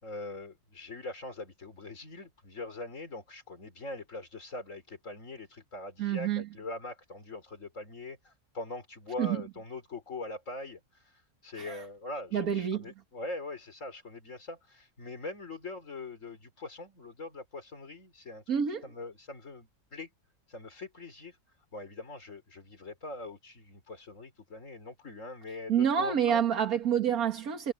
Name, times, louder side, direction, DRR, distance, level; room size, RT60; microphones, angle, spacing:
voice 1, 0.0-18.4 18.8-20.1 20.5-21.4 21.7-26.4, left 2 dB, 50° left, 3.8 m, -42 dB
voice 2, 6.0-6.4 9.2-9.4 11.6-11.8 12.3-12.9 18.5-18.8 25.7-27.7, right 8 dB, 65° right, 2.1 m, -28 dB
omnidirectional pair, 1.7 m